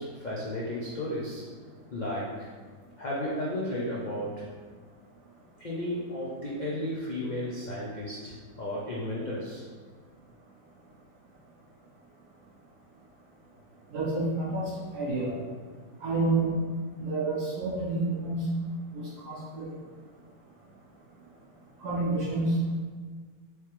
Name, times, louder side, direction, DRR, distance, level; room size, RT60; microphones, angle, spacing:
voice 1, 0.0-1.4 1.9-2.5 3.0-4.4 5.6-9.6, left 1 dB, 90° left, -6 dB, 0.4 m, -33 dB
voice 2, 13.9-15.4 16.0-16.6 17.0-18.4 18.9-19.7 21.8-22.6, right 2 dB, 70° right, -8 dB, 2.0 m, -29 dB
4.5 x 3.3 x 3.0 m, 1.5 s
omnidirectional pair, 1.8 m